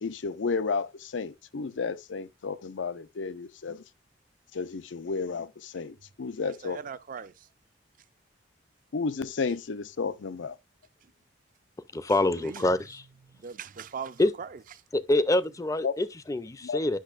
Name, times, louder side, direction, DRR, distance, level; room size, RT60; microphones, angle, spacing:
voice 1, 0.0-3.8 4.5-6.8 8.9-10.6 15.8-15.9 16.6-16.8, left 4 dB, 85° left, 0.5 m, -32 dB
voice 2, 6.4-7.3 12.1-12.6 13.4-14.5, right 6 dB, 45° right, 0.5 m, -40 dB
voice 3, 11.9-13.0 14.2-14.3 14.9-17.0, left 2 dB, 20° left, 0.4 m, -26 dB
10.5 x 6.0 x 2.4 m
head